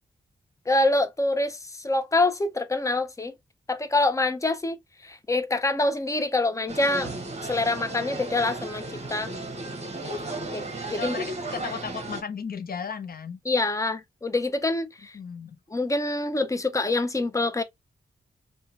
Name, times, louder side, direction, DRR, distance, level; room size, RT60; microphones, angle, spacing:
voice 1, 0.7-3.3 3.7-7.1 7.4-8.8 9.1-9.3 10.5-11.2 13.5-15.1 15.7-17.6, left 2 dB, 15° left, 0.5 m, -25 dB
sound 1, 6.7-12.2, right 2 dB, 35° right, 0.9 m, -34 dB
voice 2, 11.0-13.4 15.1-15.6, left 6 dB, 50° left, 0.7 m, -35 dB
2.9 x 2.2 x 2.4 m
cardioid pair, 65°, 19 cm